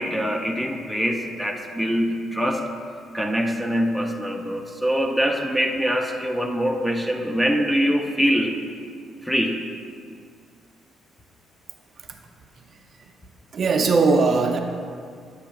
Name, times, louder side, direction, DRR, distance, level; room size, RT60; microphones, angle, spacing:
voice 1, 0.0-2.6 3.1-8.5 9.2-9.6, equal, 5° left, 3 dB, 0.5 m, -23 dB
voice 2, 13.5-14.6, right 4 dB, 45° right, 4 dB, 0.5 m, -19 dB
7.9 x 2.7 x 5.7 m, 2.2 s
cardioid pair, 120°, 0 cm